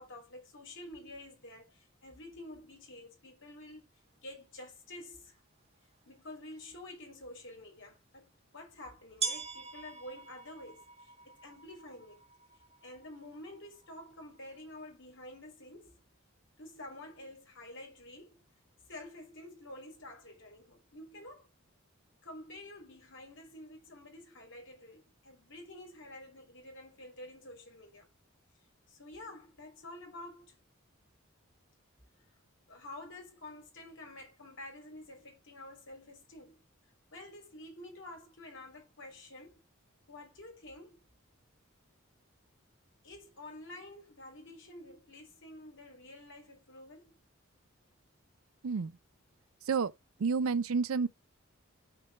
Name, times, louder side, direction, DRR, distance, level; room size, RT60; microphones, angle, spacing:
voice 1, 0.0-3.9 4.2-5.4 6.0-12.2 12.8-16.0 16.6-18.4 18.9-21.5 22.2-28.1 28.9-30.6 32.7-36.6 37.1-39.6 40.1-41.0 43.0-47.2, left 1 dB, 65° left, 3.1 m, -49 dB
sound 1, 5.3-5.4 6.1-6.2 7.9-8.0 9.2-14.8, right 5 dB, 30° right, 1.6 m, -43 dB
voice 2, 48.6-49.0 49.6-49.9 50.2-51.1, right 5 dB, 80° right, 0.5 m, -29 dB
6.0 x 4.4 x 6.0 m
head